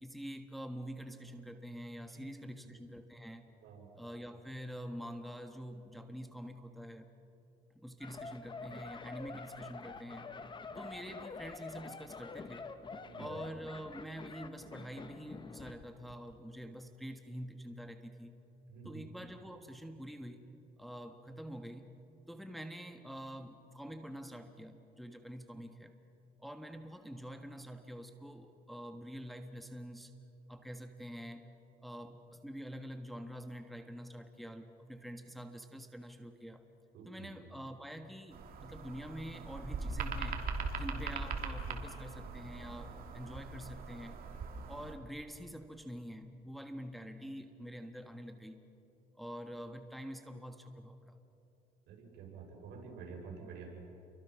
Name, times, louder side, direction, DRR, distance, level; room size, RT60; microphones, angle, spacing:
voice 1, 0.0-3.4 3.9-7.1 7.7-10.3 10.8-12.7 13.2-18.3 18.8-20.4 20.8-21.9 22.3-25.9 26.4-30.1 30.5-31.5 31.8-36.6 37.0-40.4 40.8-44.2 44.7-48.6 49.2-51.2, equal, ahead, 5 dB, 1.4 m, -46 dB
sound 1, 8.0-15.8 16.1-16.3, left 4 dB, 30° left, 1.3 m, -47 dB
voice 2, 13.0-13.4 18.7-19.1 36.9-37.3 40.8-41.0 51.8-53.7, right 5 dB, 80° right, 0 dB, 6.7 m, -49 dB
sound 2, 38.3-44.9, right 4 dB, 60° right, 3.1 m, -41 dB
29.5 x 24.0 x 6.2 m, 2.8 s
cardioid pair, 110°, 17 cm